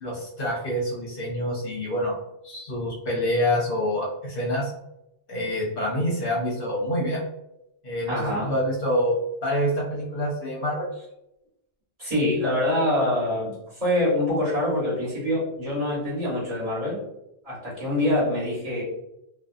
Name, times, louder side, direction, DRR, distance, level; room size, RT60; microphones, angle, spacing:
voice 1, 0.0-2.2 2.4-4.7 5.3-7.2 7.8-9.2 9.4-10.9, equal, 60° left, -4 dB, 0.8 m, -26 dB
voice 2, 8.1-8.5 12.0-17.0 17.4-18.8, left 1 dB, 35° right, -9 dB, 1.2 m, -25 dB
2.5 x 2.3 x 2.3 m, 0.84 s
omnidirectional pair, 1.2 m